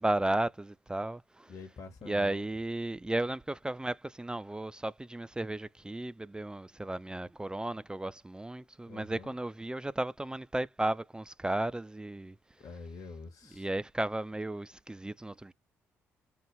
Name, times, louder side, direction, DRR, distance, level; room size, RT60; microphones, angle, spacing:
voice 1, 0.0-1.5 2.0-12.4 13.5-15.5, right 1 dB, 10° right, 0.4 m, -34 dB
voice 2, 1.5-2.5 8.9-9.4 12.6-13.7, left 4 dB, 50° left, 0.9 m, -46 dB
4.8 x 2.2 x 3.1 m
figure-of-eight pair, 45°, 7 cm